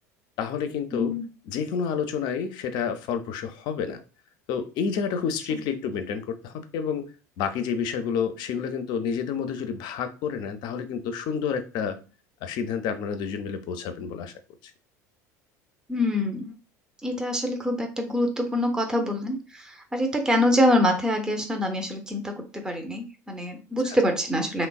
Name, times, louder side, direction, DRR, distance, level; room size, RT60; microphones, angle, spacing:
voice 1, 0.4-1.1 1.5-4.0 4.5-7.1 7.4-12.0 12.4-14.3, left 6 dB, 55° left, 8 dB, 0.5 m, -29 dB
voice 2, 0.9-1.2 5.5-5.6 15.9-16.5 17.0-24.7, left 1 dB, 5° right, 3 dB, 0.6 m, -25 dB
3.1 x 2.0 x 2.3 m, 0.34 s
hypercardioid pair, 75°, 9 cm